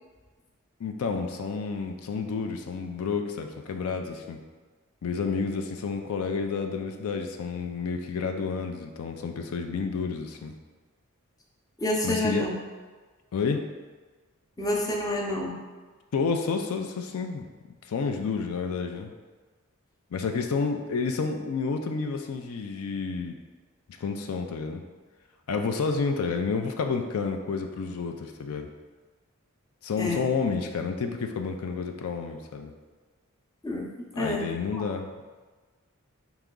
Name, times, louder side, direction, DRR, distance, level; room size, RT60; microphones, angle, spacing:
voice 1, 0.8-4.4 5.0-10.5 12.0-12.5 13.3-13.6 16.1-17.5 17.9-19.1 20.1-23.4 24.0-24.8 25.5-28.7 29.8-32.7 34.1-35.1, left 5 dB, 80° left, 5 dB, 0.4 m, -30 dB
voice 2, 11.8-12.5 14.6-15.6 30.0-30.3 33.6-33.9 34.2-34.8, left 1 dB, 15° left, -2 dB, 0.5 m, -28 dB
4.6 x 3.0 x 3.7 m, 1.4 s
head